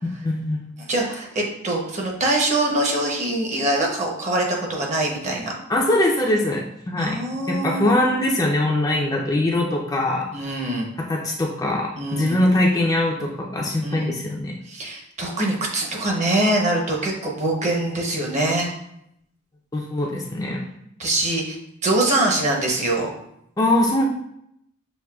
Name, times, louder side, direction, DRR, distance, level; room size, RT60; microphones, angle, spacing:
voice 1, 0.0-0.6 5.7-7.2 7.5-10.3 11.1-14.5 19.7-20.6 23.6-24.0, left 1 dB, 20° left, -1 dB, 0.4 m, -22 dB
voice 2, 0.8-5.5 7.0-8.0 10.3-10.9 12.0-12.4 13.8-14.1 14.6-18.7 21.0-21.6 21.8-23.1, right 1 dB, 35° right, -1 dB, 0.8 m, -23 dB
6.3 x 2.6 x 2.3 m, 0.76 s
head